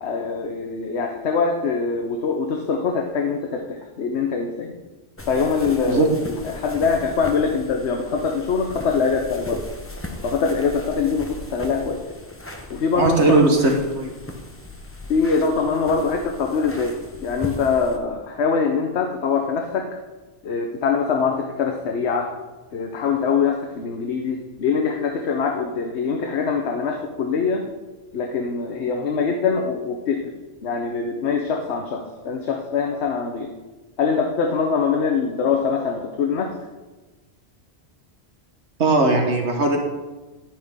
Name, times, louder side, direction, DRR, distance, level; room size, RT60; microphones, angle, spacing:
voice 1, 0.0-4.7 5.3-9.6 10.2-12.0 12.7-13.3 15.1-17.0 17.2-19.9 20.4-22.3 22.7-27.6 28.1-30.3 30.6-33.5 34.0-36.5, left 5 dB, 75° left, 3 dB, 1.1 m, -23 dB
sound 1, 5.2-18.0, left 1 dB, 15° left, 0.8 m, -37 dB
voice 2, 12.9-14.1 38.8-39.8, right 2 dB, 80° right, 2 dB, 1.6 m, -18 dB
11.0 x 9.1 x 3.6 m, 1.2 s
omnidirectional pair, 1.1 m